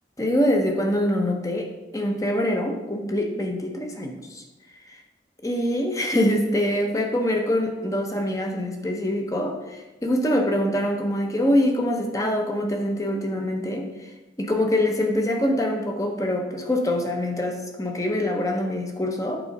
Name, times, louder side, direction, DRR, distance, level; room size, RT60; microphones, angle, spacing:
voice 1, 0.2-4.4 4.8-5.0 5.4-14.1 14.4-19.4, left 1 dB, 20° left, 3 dB, 0.8 m, -24 dB
7.9 x 3.8 x 5.3 m, 1.1 s
head